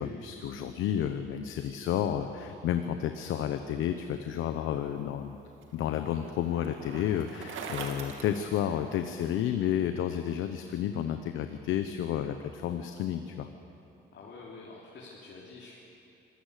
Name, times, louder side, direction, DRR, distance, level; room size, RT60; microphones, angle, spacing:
voice 1, 0.0-5.4 5.7-13.5, left 10 dB, 90° left, 8 dB, 1.0 m, -31 dB
Bicycle, 4.9-9.3, right 5 dB, 80° right, 2.5 m, -43 dB
voice 2, 14.1-15.8, left 3 dB, 60° left, -4 dB, 3.6 m, -47 dB
25.5 x 16.0 x 8.3 m, 2.8 s
cardioid pair, 90°, 20 cm